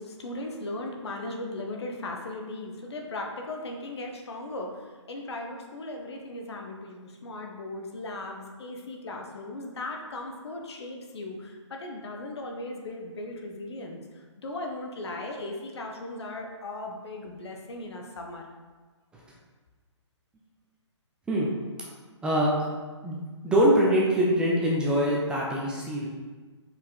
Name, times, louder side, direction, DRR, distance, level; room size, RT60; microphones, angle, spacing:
voice 1, 0.0-4.7 5.1-14.0 14.4-18.5, left 2 dB, 60° left, 2 dB, 1.2 m, -37 dB
voice 2, 22.2-22.7 23.0-23.2 23.4-26.1, equal, 5° right, -4 dB, 0.6 m, -23 dB
5.4 x 4.7 x 4.1 m, 1.4 s
hypercardioid pair, 150°, 16 cm